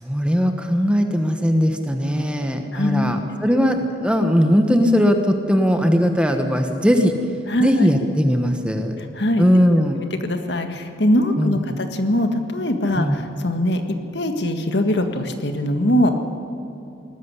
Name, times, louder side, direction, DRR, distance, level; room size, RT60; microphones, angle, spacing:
voice 1, 0.0-7.1 7.6-8.9 9.4-10.0 11.4-11.8 13.0-13.2, equal, 5° right, 5 dB, 1.2 m, -19 dB
voice 2, 2.7-3.4 7.5-7.9 9.0-13.8 14.1-16.2, left 1 dB, 65° left, 6 dB, 1.7 m, -22 dB
19.5 x 14.0 x 9.8 m, 2.8 s
head